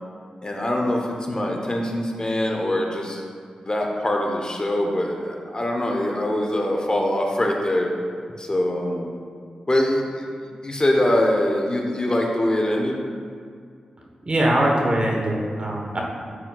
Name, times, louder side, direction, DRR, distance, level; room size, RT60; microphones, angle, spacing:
voice 1, 0.4-3.2 3.6-7.9 8.4-9.2 9.7-10.2 10.6-13.0, left 1 dB, 30° left, 1 dB, 0.9 m, -23 dB
voice 2, 14.3-16.0, right 1 dB, 45° right, -1 dB, 1.1 m, -22 dB
9.7 x 4.3 x 2.3 m, 2.2 s
cardioid pair, 40°, 3 cm